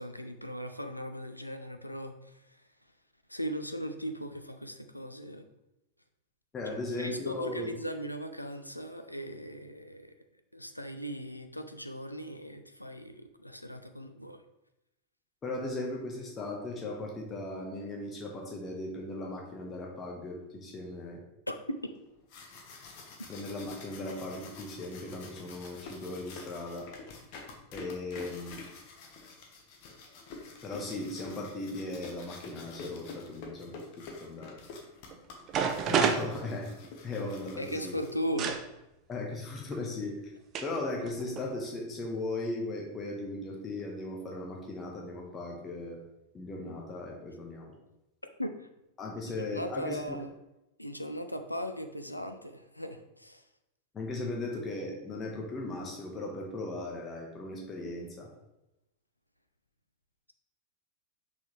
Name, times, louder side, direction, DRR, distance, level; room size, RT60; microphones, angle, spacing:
voice 1, 0.0-2.1 3.3-5.4 6.6-10.1 10.5-14.4 21.5-21.8 37.6-38.6 48.4-48.7 49.5-50.3 50.8-53.4, equal, 85° left, 7 dB, 0.5 m, -38 dB
voice 2, 6.5-7.7 15.4-21.2 23.3-26.9 27.7-28.6 30.6-34.6 35.9-36.7 37.0-38.0 39.1-40.2 40.6-46.0 46.3-47.7 49.0-50.2 53.9-58.3, left 2 dB, 20° left, -1 dB, 1.2 m, -37 dB
sound 1, 22.1-38.5, left 4 dB, 45° left, 1.2 m, -48 dB
sound 2, 35.1-35.2 35.5-37.1 38.4-38.6 39.7-39.8 40.5-40.8 41.1-41.5, right 6 dB, 35° right, 0.6 m, -29 dB
6.4 x 5.3 x 3.2 m, 0.92 s
figure-of-eight pair, 90°, 0 cm